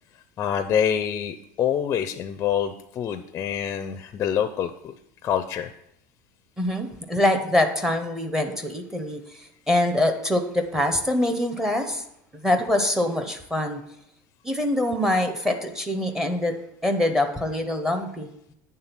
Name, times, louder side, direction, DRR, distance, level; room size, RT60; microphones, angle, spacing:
voice 1, 0.4-5.0 5.2-5.7, left 8 dB, 30° left, 9 dB, 0.4 m, -26 dB
voice 2, 6.6-12.0 12.4-13.8 14.4-16.5 16.8-18.3, left 1 dB, 5° right, 6 dB, 0.8 m, -24 dB
8.8 x 3.7 x 5.8 m, 0.77 s
supercardioid pair, 135°, 8 cm